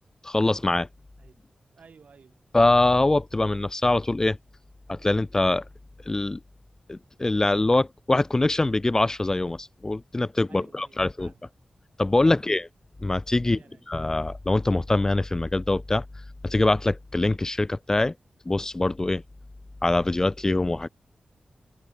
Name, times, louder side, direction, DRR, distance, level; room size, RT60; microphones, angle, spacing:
voice 1, 0.2-0.9 2.5-4.4 4.9-5.6 6.1-6.4 6.9-11.3 12.0-12.7 13.0-13.6 13.9-16.0 16.4-18.1 18.5-19.2 19.8-20.9, left 2 dB, 20° left, 0.5 m, -23 dB
voice 2, 1.7-2.4 10.5-11.5 12.2-12.4 13.4-13.9, right 5 dB, 70° right, 5.4 m, -54 dB
wide cardioid pair, 115°, 3 cm